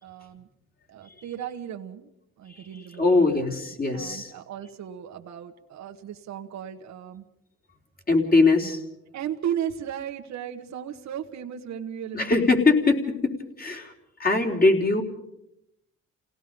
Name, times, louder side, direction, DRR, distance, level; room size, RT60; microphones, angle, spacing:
voice 1, 0.0-0.5 0.9-2.1 2.4-3.6 3.9-7.2 9.1-12.4, right 9 dB, 65° right, 3 dB, 1.4 m, -35 dB
voice 2, 3.0-4.3 8.1-8.8 12.1-13.9 14.2-15.0, left 3 dB, 30° left, 3 dB, 3.9 m, -21 dB
29.5 x 17.5 x 5.3 m, 0.82 s
cardioid pair, 90°, 30 cm